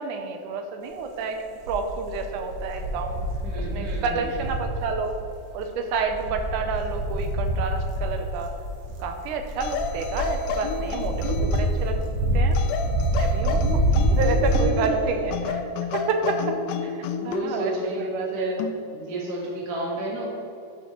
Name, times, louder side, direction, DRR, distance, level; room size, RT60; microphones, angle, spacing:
voice 1, 0.0-1.4 1.7-3.2 3.6-5.2 5.5-8.5 9.0-12.0 12.3-12.6 13.2-13.6 14.1-15.6 15.9-18.6, right 4 dB, 90° right, 5 dB, 2.3 m, -29 dB
sound 1, 1.7-5.0 5.9-14.6, right 1 dB, 65° right, 2.1 m, -26 dB
voice 2, 3.4-4.3 14.6-15.0 17.2-18.6 18.9-20.3, right 1 dB, 40° right, -4 dB, 1.6 m, -31 dB
sound 2, 9.6-11.9 12.5-14.9 15.3-17.5 18.6-18.8, left 6 dB, 80° left, 1.7 m, -31 dB
13.0 x 6.8 x 3.1 m, 2.8 s
omnidirectional pair, 3.5 m